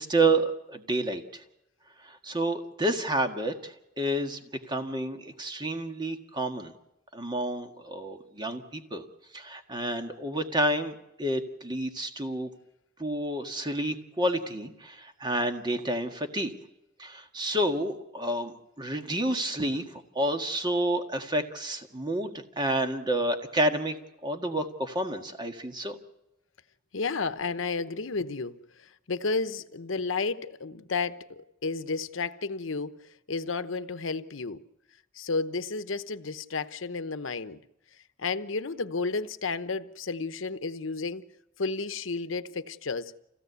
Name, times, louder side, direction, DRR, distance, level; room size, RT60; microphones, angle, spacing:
voice 1, 0.0-1.4 2.0-4.4 4.7-6.7 7.1-9.0 9.3-12.5 13.0-16.5 17.0-24.0 24.2-26.0, right 1 dB, 25° right, 1.7 m, -29 dB
voice 2, 26.9-28.6 29.1-33.0 33.3-34.6 35.2-37.6 38.2-41.2 41.6-43.1, left 4 dB, 75° left, 0.9 m, -32 dB
27.0 x 17.0 x 8.1 m
head